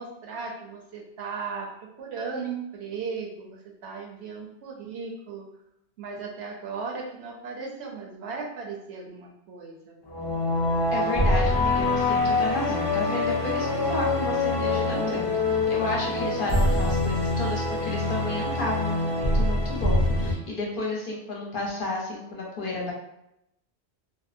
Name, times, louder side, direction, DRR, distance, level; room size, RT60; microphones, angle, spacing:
voice 1, 0.0-1.7 2.0-5.5 6.0-10.0, right 5 dB, 75° right, 0 dB, 0.9 m, -36 dB
sound 1, 10.0-20.3, left 2 dB, 35° left, 0.4 m, -25 dB
voice 2, 10.9-22.9, left 2 dB, 60° left, -3 dB, 0.8 m, -32 dB
2.6 x 2.0 x 2.4 m, 0.80 s
omnidirectional pair, 1.1 m